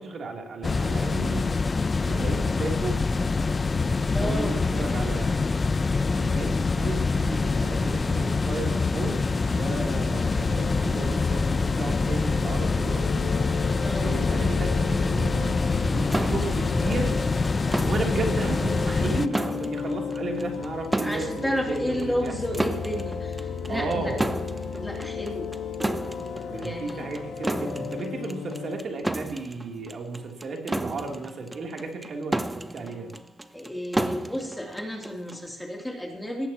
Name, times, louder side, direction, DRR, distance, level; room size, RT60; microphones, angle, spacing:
voice 1, 0.0-1.5 2.0-3.0 4.1-5.4 6.1-13.3 14.0-17.2 17.8-22.4 23.7-24.2 26.5-33.1, right 3 dB, 50° right, 2 dB, 3.2 m, -33 dB
sound 1, 0.6-19.3, left 4 dB, 30° left, 0.6 m, -25 dB
voice 2, 4.1-4.5 13.8-14.2 21.0-24.1 24.8-25.5 26.5-27.1 33.5-36.5, equal, 5° left, 1 dB, 3.1 m, -32 dB
sound 2, 10.2-28.8, left 6 dB, 60° left, 1.4 m, -35 dB
sound 3, 16.1-35.5, right 1 dB, 10° right, 0.8 m, -33 dB
18.0 x 14.5 x 3.0 m, 0.83 s
cardioid pair, 90°, 0 cm